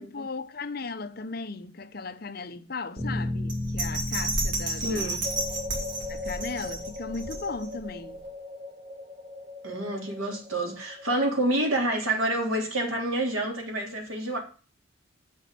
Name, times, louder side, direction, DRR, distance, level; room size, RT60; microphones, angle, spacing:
voice 1, 0.0-5.1 6.1-8.2, left 4 dB, 45° left, 0.8 m, -36 dB
Bass guitar, 3.0-7.3, left 1 dB, 10° right, 3.8 m, -35 dB
Bell, 3.5-7.8 8.2-8.3, right 2 dB, 60° right, 4.2 m, -32 dB
voice 2, 4.8-5.2 9.6-14.4, right 1 dB, 80° right, 3.6 m, -28 dB
sound 1, 5.2-11.7, left 3 dB, 30° right, 0.8 m, -40 dB
8.2 x 6.5 x 7.6 m
head